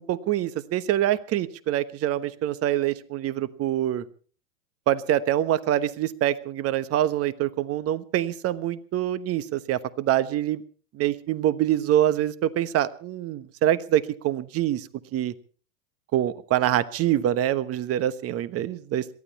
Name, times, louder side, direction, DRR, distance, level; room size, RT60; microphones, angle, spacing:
voice 1, 0.0-4.0 4.9-10.6 11.0-15.3 16.1-19.1, right 12 dB, 30° right, 15 dB, 1.2 m, -25 dB
22.5 x 14.5 x 4.2 m, 0.40 s
hypercardioid pair, 105°, 44 cm